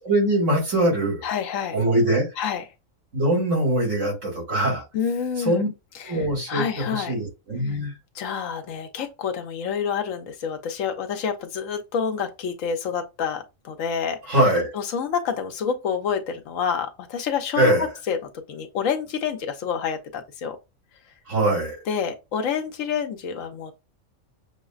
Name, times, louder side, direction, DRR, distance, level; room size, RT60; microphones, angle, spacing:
voice 1, 0.0-1.2 1.7-2.3 3.1-4.8 5.4-5.7 6.0-7.9 14.3-14.7 17.5-17.9 21.3-21.8, right 1 dB, 65° right, 2.2 m, -22 dB
voice 2, 1.2-1.8 2.4-2.6 4.9-5.6 6.0-6.1 6.5-7.1 8.2-14.4 14.7-17.7 18.1-18.2 18.5-20.6 21.9-23.7, left 7 dB, 75° left, 1.1 m, -28 dB
6.2 x 2.1 x 2.3 m
omnidirectional pair, 1.4 m